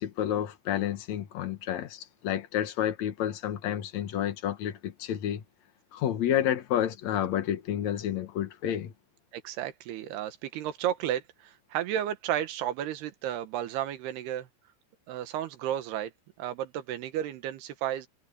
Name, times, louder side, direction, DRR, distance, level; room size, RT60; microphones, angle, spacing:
voice 1, 0.0-5.4 5.9-8.9, left 10 dB, 85° left, 1.5 m, -30 dB
voice 2, 9.3-14.5 15.1-16.1 16.4-18.1, right 11 dB, 70° right, 3.1 m, -33 dB
omnidirectional pair, 5.3 m